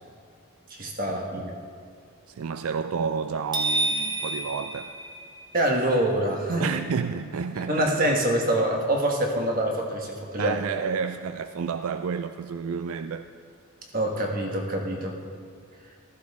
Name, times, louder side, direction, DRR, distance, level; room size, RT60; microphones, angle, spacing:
voice 1, 0.7-1.5 5.5-6.7 7.5-10.6 13.9-15.2, right 1 dB, 40° right, 1.4 m, -25 dB
voice 2, 2.3-5.0 6.6-8.0 10.4-13.3, right 6 dB, 75° right, 0.3 m, -30 dB
sound 1, 3.5-5.7, right 1 dB, 20° right, 1.2 m, -29 dB
14.5 x 13.5 x 3.6 m
head